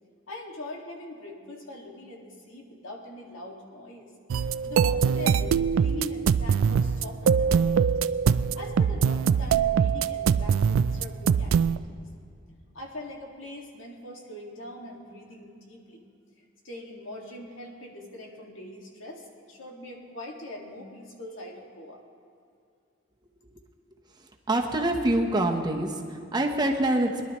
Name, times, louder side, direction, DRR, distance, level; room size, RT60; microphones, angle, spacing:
voice 1, 0.3-4.1 4.6-7.9 8.5-12.1 12.7-16.1 16.6-22.0, left 1 dB, 85° left, 0 dB, 2.1 m, -42 dB
sound 1, 4.3-11.8, right 7 dB, 85° right, 0.3 m, -23 dB
voice 2, 24.5-27.2, right 1 dB, 20° right, 2 dB, 1.0 m, -25 dB
21.5 x 11.5 x 3.1 m, 2.4 s
head